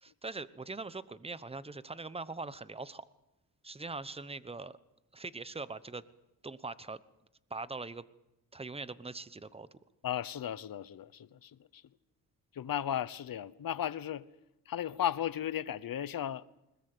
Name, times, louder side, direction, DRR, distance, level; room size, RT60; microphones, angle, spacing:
voice 1, 0.0-3.0 3.6-4.8 5.1-6.0 6.4-7.0 7.5-8.0 8.5-9.7, right 3 dB, 15° right, 0.9 m, -42 dB
voice 2, 10.0-11.8 12.5-14.2 14.7-16.4, left 10 dB, 60° left, 0.9 m, -35 dB
21.0 x 20.5 x 7.9 m
cardioid pair, 90°, 39 cm